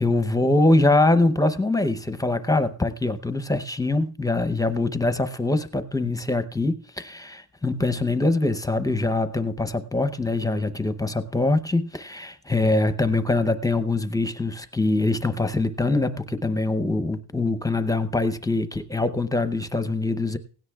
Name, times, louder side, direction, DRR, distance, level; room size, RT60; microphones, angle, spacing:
voice 1, 0.0-20.4, left 2 dB, 10° left, 0.7 m, -23 dB
17.0 x 16.0 x 2.3 m
wide cardioid pair, 125°, 47 cm